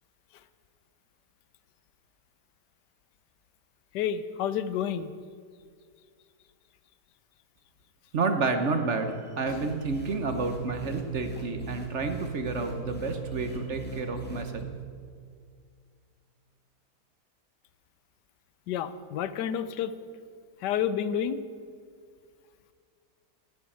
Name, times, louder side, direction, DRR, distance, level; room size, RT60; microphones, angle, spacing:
voice 1, 3.9-5.1 18.7-19.9 20.6-21.4, left 9 dB, 90° left, 14 dB, 1.3 m, -29 dB
voice 2, 8.1-14.7, right 3 dB, 50° right, 7 dB, 1.2 m, -30 dB
sound 1, 9.5-14.6, right 3 dB, 5° left, 2.0 m, -38 dB
12.0 x 8.7 x 8.6 m, 2.1 s
omnidirectional pair, 1.8 m